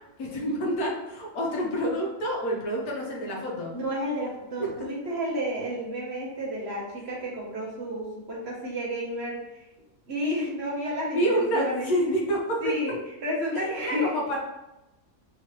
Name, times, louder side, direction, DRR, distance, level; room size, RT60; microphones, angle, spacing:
voice 1, 0.2-3.7 11.1-12.6 13.5-14.4, right 1 dB, 80° left, -2 dB, 1.4 m, -28 dB
voice 2, 3.7-9.7 10.1-11.9 12.6-14.1, equal, 50° right, -3 dB, 1.1 m, -31 dB
3.8 x 3.0 x 2.9 m, 0.96 s
omnidirectional pair, 1.6 m